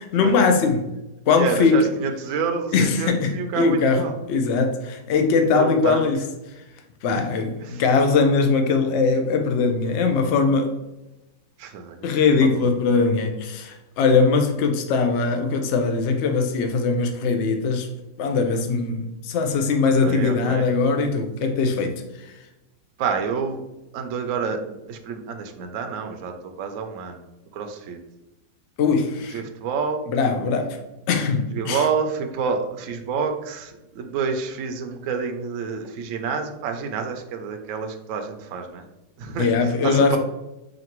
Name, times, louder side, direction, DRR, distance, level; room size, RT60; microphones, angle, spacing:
voice 1, 0.1-0.9 1.3-1.8 2.7-6.2 7.0-10.8 12.0-17.9 18.2-22.3 28.8-29.4 30.1-30.8 31.1-31.8 39.4-40.2, left 4 dB, 65° left, 0.7 m, -21 dB
voice 2, 1.4-4.1 5.5-6.1 7.1-7.3 7.6-7.8 11.6-12.1 12.4-12.7 13.0-13.1 19.8-20.7 23.0-23.6 23.9-27.2 27.5-28.0 29.3-30.1 31.5-38.8 39.2-40.2, right 5 dB, 70° right, 0.8 m, -28 dB
5.1 x 2.6 x 2.9 m
omnidirectional pair, 1.7 m